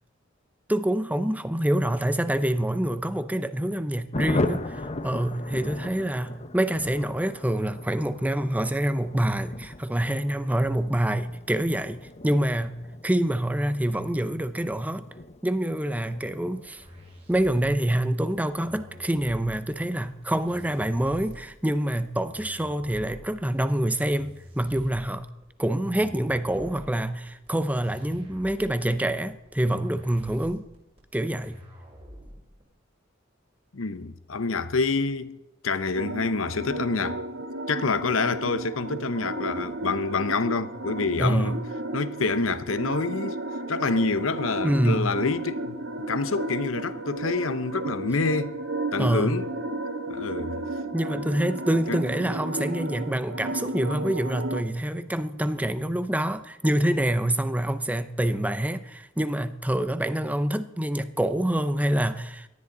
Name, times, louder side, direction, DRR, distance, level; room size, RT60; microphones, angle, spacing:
voice 1, 0.7-12.7 13.0-15.1 15.4-16.8 17.3-25.3 25.6-30.7 31.1-31.6 41.2-41.6 44.6-45.1 49.0-49.4 50.9-62.5, right 1 dB, 10° right, 0.7 m, -26 dB
Thunder, 4.1-20.2 20.5-20.6 20.9-21.0 21.3-21.7, left 2 dB, 35° left, 0.9 m, -37 dB
sound 1, 16.6-32.6, equal, 30° right, 5.1 m, -47 dB
voice 2, 33.7-37.2 37.7-41.6 41.9-43.4 43.7-45.8 46.1-48.5 48.9-49.5 50.1-50.6 51.9-52.0, left 4 dB, 80° left, 0.9 m, -27 dB
sound 2, 35.9-54.6, right 2 dB, 80° right, 1.4 m, -33 dB
18.5 x 13.0 x 4.0 m
head